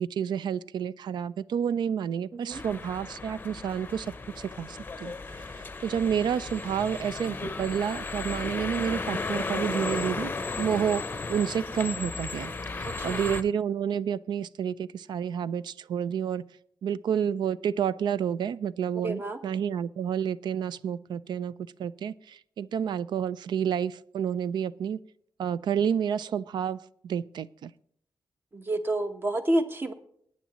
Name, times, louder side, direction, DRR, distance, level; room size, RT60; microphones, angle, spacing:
voice 1, 0.0-10.3 10.6-16.4 16.8-21.5 21.8-25.0 25.4-26.8 27.0-27.7, right 8 dB, 85° right, 18 dB, 0.4 m, -30 dB
voice 2, 2.3-2.6 12.8-13.2 19.0-19.4 28.5-29.9, right 1 dB, 30° right, 7 dB, 1.1 m, -29 dB
sound 1, 2.5-13.4, left 3 dB, 25° left, 0.7 m, -35 dB
19.0 x 9.3 x 3.0 m, 0.68 s
wide cardioid pair, 130°, 7 cm